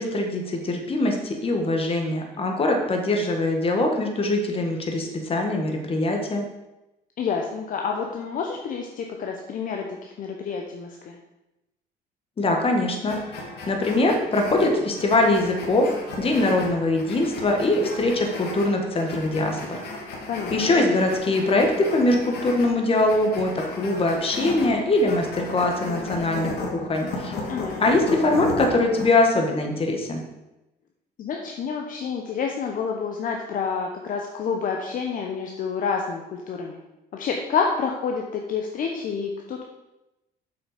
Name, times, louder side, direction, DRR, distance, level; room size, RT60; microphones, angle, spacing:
voice 1, 0.0-6.4 12.4-13.2 13.7-15.9 16.2-19.8 20.5-27.3 27.8-30.2, left 2 dB, 35° left, 2 dB, 1.7 m, -22 dB
voice 2, 7.2-11.2 20.3-20.7 27.5-27.8 31.2-36.8 37.1-39.6, left 5 dB, 55° left, 2 dB, 0.9 m, -28 dB
sound 1, 13.1-29.1, left 2 dB, 80° left, 2.2 m, -35 dB
7.6 x 5.9 x 5.1 m, 0.97 s
cardioid pair, 110°, 17 cm